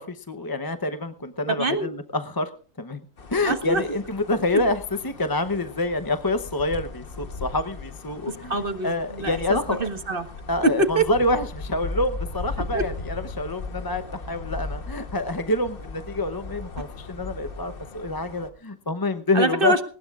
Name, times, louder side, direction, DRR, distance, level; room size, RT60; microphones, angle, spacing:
voice 1, 0.0-2.5 2.8-3.0 3.3-8.5 8.8-9.8 10.5-19.7, left 2 dB, 20° left, 9 dB, 0.6 m, -27 dB
voice 2, 1.5-2.0 3.4-3.8 4.5-4.6 8.2-10.3 10.6-11.0 12.7-12.8 19.3-19.9, right 2 dB, 45° right, 7 dB, 1.6 m, -25 dB
sound 1, 3.2-18.5, left 3 dB, 45° left, 1.3 m, -37 dB
19.5 x 19.0 x 2.4 m, 0.39 s
omnidirectional pair, 1.4 m